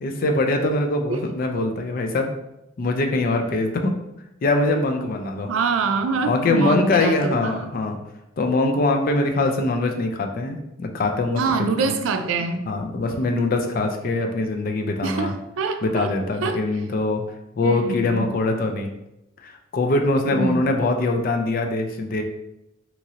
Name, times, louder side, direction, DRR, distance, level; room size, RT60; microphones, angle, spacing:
voice 1, 0.0-2.3 2.8-4.0 4.4-5.5 6.3-8.0 8.4-11.9 12.7-15.3 15.8-17.2 17.6-18.9 19.4-22.2, left 2 dB, 45° left, 4 dB, 0.4 m, -23 dB
voice 2, 5.5-7.6 11.4-12.7 15.0-16.1 16.4-16.6 17.6-18.3 20.3-20.6, right 4 dB, 85° right, 6 dB, 0.4 m, -25 dB
2.9 x 2.5 x 2.7 m, 0.88 s
head